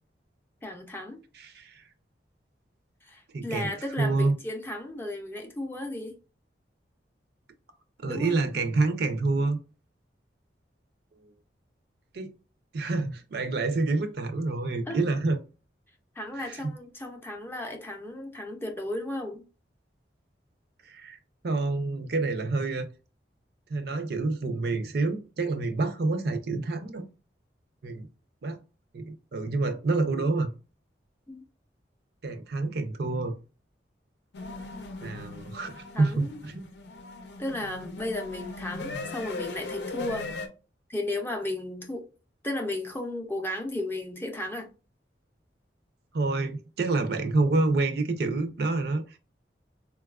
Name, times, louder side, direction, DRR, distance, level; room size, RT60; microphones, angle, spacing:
voice 1, 0.6-1.2 3.0-6.2 8.1-8.4 14.9-15.0 16.2-19.4 31.3-31.4 35.9-36.4 37.4-40.3 40.9-42.0 42.4-44.7, left 1 dB, 10° left, 0.5 m, -34 dB
voice 2, 1.3-1.8 3.3-4.3 8.0-9.6 11.2-11.3 12.1-12.3 12.7-15.4 16.4-16.6 20.8-21.2 21.4-22.9 23.7-27.0 27.8-28.1 28.4-28.6 28.9-30.5 32.2-33.3 35.0-36.7 46.1-49.2, right 3 dB, 60° right, 0.5 m, -28 dB
sound 1, 34.3-40.5, left 2 dB, 70° left, 0.6 m, -38 dB
4.0 x 2.3 x 2.3 m
head